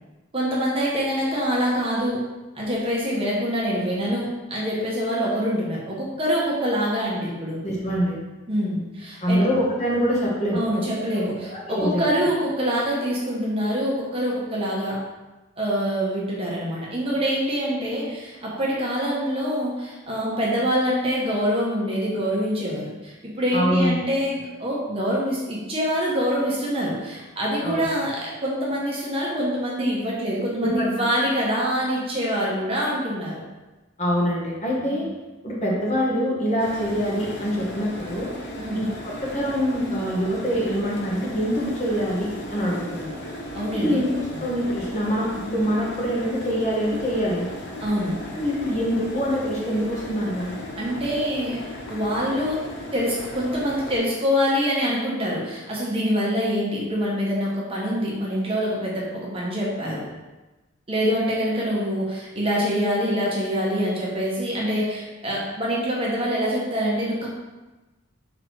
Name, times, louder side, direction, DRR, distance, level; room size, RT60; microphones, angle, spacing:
voice 1, 0.3-2.2 2.5-7.6 8.5-9.4 10.5-15.0 15.6-33.4 34.9-35.0 38.6-38.8 43.5-44.0 44.3-44.4 47.8-48.2 50.8-51.6 51.9-52.7 52.9-60.0 60.9-67.3, equal, 25° right, -5 dB, 1.2 m, -25 dB
voice 2, 7.6-8.2 9.2-10.6 11.1-11.2 11.5-12.0 23.5-24.0 27.6-27.8 30.6-30.9 34.0-35.1 35.4-38.3 38.7-43.1 43.8-47.5 48.3-50.5, equal, 30° left, -4 dB, 1.3 m, -24 dB
sound 1, 36.6-54.0, left 1 dB, 50° left, 0.9 m, -36 dB
5.8 x 3.9 x 4.6 m, 1.1 s
head